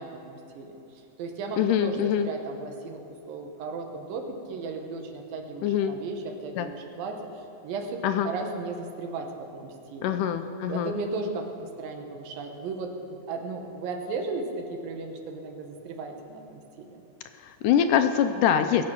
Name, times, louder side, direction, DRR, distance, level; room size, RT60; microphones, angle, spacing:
voice 1, 0.0-3.0 3.3-10.2 10.7-17.0, right 3 dB, 85° right, 4 dB, 2.9 m, -36 dB
voice 2, 1.6-2.3 5.6-6.0 6.6-6.7 8.0-8.3 10.0-10.9 17.4-18.8, left 9 dB, 80° left, 8 dB, 2.0 m, -24 dB
21.0 x 7.7 x 5.9 m, 2.7 s
omnidirectional pair, 4.0 m